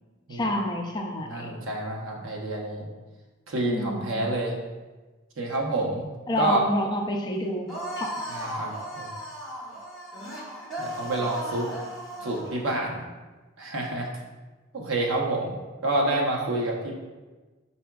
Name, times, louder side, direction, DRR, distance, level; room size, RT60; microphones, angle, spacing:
voice 1, 0.3-1.6 3.6-4.2 6.3-7.7 8.0-8.1, left 1 dB, 20° left, 1 dB, 0.4 m, -28 dB
voice 2, 1.2-2.8 3.5-4.5 5.4-6.1 6.4-6.6 8.3-9.1 10.8-11.7 12.2-13.0 13.6-14.1 14.7-15.6 15.8-16.9, right 2 dB, 75° right, -1 dB, 0.8 m, -28 dB
Elf Male Warcry, 7.7-12.6, right 1 dB, ahead, 0.9 m, -36 dB
4.6 x 4.2 x 2.3 m, 1.2 s
head